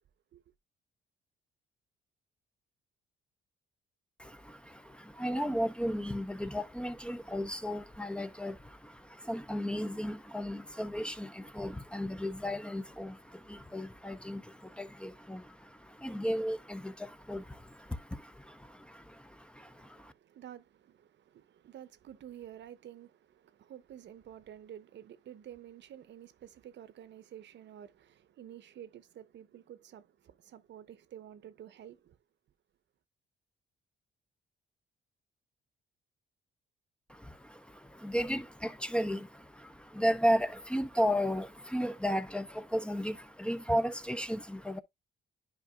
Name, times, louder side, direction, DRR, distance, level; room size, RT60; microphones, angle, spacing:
voice 1, 4.2-20.1 37.1-44.8, equal, 5° left, 0.7 m, -34 dB
voice 2, 19.6-32.2, right 10 dB, 65° right, 0.8 m, -51 dB
10.5 x 4.9 x 2.3 m
cardioid pair, 90°, 20 cm